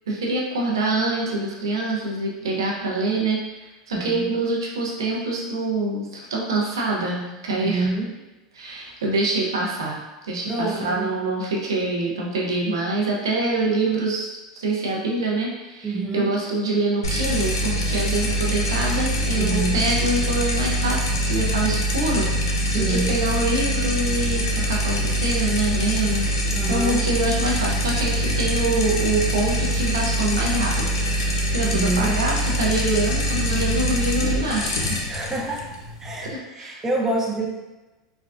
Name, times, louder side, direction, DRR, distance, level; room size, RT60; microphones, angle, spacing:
voice 1, 0.1-7.9 8.5-10.0 10.2-14.3 14.5-34.9 36.2-36.8, right 2 dB, 90° right, -3 dB, 0.6 m, -25 dB
voice 2, 4.0-4.3 7.5-8.1 10.5-11.1 15.8-16.3 19.3-19.8 22.6-23.2 26.5-27.0 31.6-32.2 35.1-35.7 36.0-37.5, right 2 dB, 20° right, -1 dB, 0.6 m, -27 dB
sound 1, 17.0-36.3, equal, 90° left, 0.5 m, -24 dB
3.4 x 2.2 x 2.4 m, 1.1 s
hypercardioid pair, 100°, 2 cm